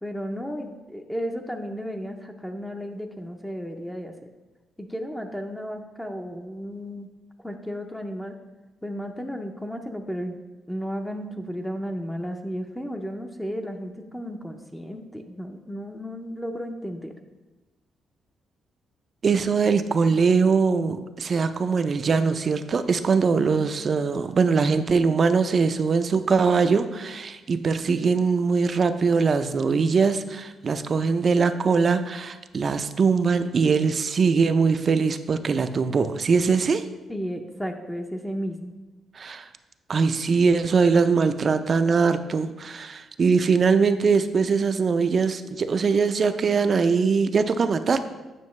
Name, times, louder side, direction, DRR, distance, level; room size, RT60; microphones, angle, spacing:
voice 1, 0.0-4.1 4.8-7.1 7.4-8.3 8.8-10.4 10.7-17.1 37.1-38.8, equal, 5° left, 4 dB, 0.6 m, -33 dB
voice 2, 19.2-36.9 39.1-39.5 39.9-48.0, right 5 dB, 45° right, 10 dB, 0.4 m, -22 dB
9.2 x 5.8 x 3.2 m, 1.2 s
cardioid pair, 100°, 0 cm